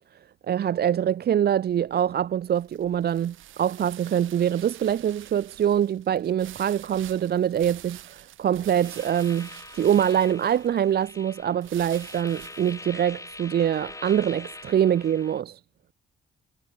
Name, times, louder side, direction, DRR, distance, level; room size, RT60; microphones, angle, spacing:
voice 1, 0.5-15.6, right 9 dB, 55° right, 0.8 m, -24 dB
sound 1, 1.7-14.8, right 13 dB, 80° right, 3.2 m, -48 dB
sound 2, 8.6-15.4, left 2 dB, 15° left, 4.1 m, -43 dB
cardioid pair, 90°, 20 cm